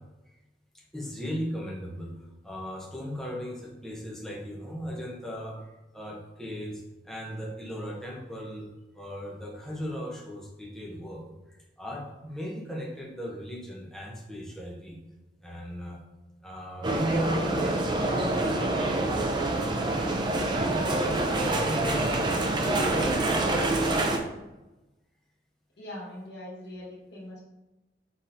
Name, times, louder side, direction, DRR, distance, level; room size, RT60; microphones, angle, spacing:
voice 1, 0.7-8.7 8.9-11.2 11.5-15.0 15.4-16.0 16.4-17.8 18.1-18.5 20.3-22.5 22.9-24.0, equal, 5° left, -3 dB, 0.7 m, -37 dB
sound 1, 16.8-24.2, right 2 dB, 25° right, 0.4 m, -26 dB
voice 2, 25.8-27.4, left 1 dB, 75° left, -4 dB, 1.3 m, -41 dB
4.2 x 3.6 x 2.6 m, 1.0 s
head